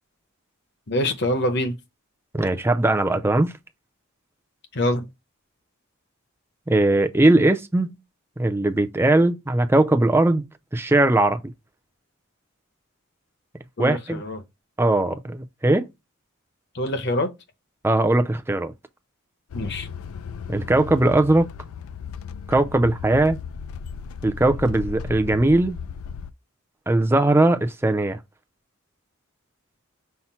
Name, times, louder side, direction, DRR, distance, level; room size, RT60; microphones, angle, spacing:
voice 1, 0.9-1.7 4.7-5.1 13.8-14.4 16.7-17.3 19.5-19.9, left 1 dB, 55° left, 0.9 m, -25 dB
voice 2, 2.3-3.5 6.7-8.0 8.4-10.4 10.7-11.4 13.8-14.2 14.8-15.9 17.8-18.7 20.5-21.5 22.5-23.4 24.2-25.8 26.9-28.2, right 2 dB, 10° right, 0.5 m, -19 dB
sound 1, 19.5-26.3, left 6 dB, 85° left, 0.4 m, -36 dB
5.7 x 2.1 x 4.3 m
head